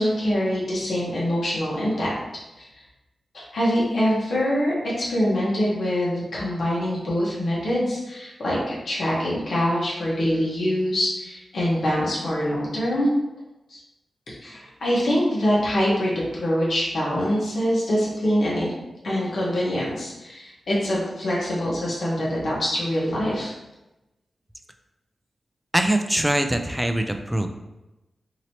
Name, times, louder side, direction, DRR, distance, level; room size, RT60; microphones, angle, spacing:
voice 1, 0.0-2.2 2.6-2.7 3.3-13.1 13.7-13.8 14.4-18.7 19.0-23.5, equal, 75° left, -6 dB, 1.1 m, -24 dB
voice 2, 25.7-27.5, right 1 dB, 5° right, 6 dB, 0.3 m, -22 dB
2.9 x 2.8 x 2.8 m, 0.99 s
cardioid pair, 75°, 0 cm